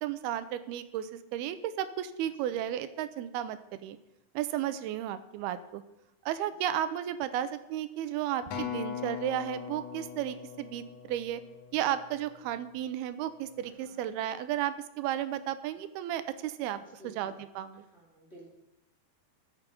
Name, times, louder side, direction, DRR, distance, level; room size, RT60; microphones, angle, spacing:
voice 1, 0.0-4.0 4.4-5.8 6.3-11.4 11.7-17.8, right 11 dB, 90° right, 12 dB, 2.7 m, -33 dB
Acoustic guitar, 8.5-12.9 13.6-13.7, left 9 dB, 60° left, 2.8 m, -41 dB
voice 2, 13.6-14.1 17.0-17.4 17.7-18.5, right 1 dB, 20° left, -4 dB, 2.5 m, -54 dB
14.0 x 8.3 x 5.2 m, 0.93 s
omnidirectional pair, 4.4 m